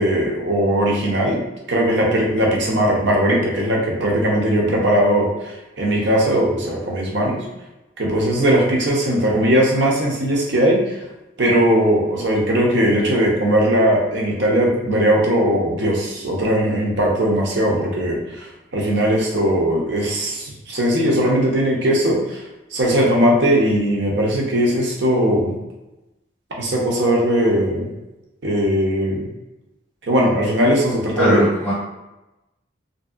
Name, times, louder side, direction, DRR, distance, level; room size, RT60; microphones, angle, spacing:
voice 1, 0.0-1.4 1.7-7.4 8.0-10.8 11.4-22.4 22.7-25.5 26.6-27.9 28.4-29.3 30.1-31.6, equal, 60° right, -2 dB, 0.7 m, -19 dB
voice 2, 31.1-31.7, equal, 10° left, -11 dB, 0.7 m, -19 dB
2.9 x 2.7 x 2.4 m, 0.98 s
head